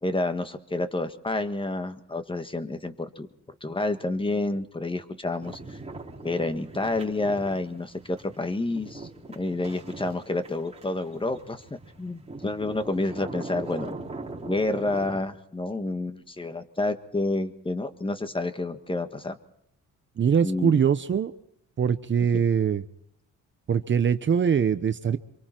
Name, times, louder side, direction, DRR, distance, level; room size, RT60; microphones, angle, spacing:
voice 1, 0.0-3.3 3.6-5.8 6.2-9.1 9.3-14.0 14.4-19.4 20.4-20.8 22.3-22.4, left 2 dB, 15° left, 9 dB, 1.5 m, -29 dB
sound 1, 5.4-15.2, right 2 dB, 20° right, 3.8 m, -41 dB
voice 2, 20.2-21.3 21.8-22.8 23.7-25.2, right 7 dB, 40° right, 11 dB, 0.9 m, -22 dB
26.0 x 23.5 x 4.5 m, 0.75 s
cardioid pair, 90°, 30 cm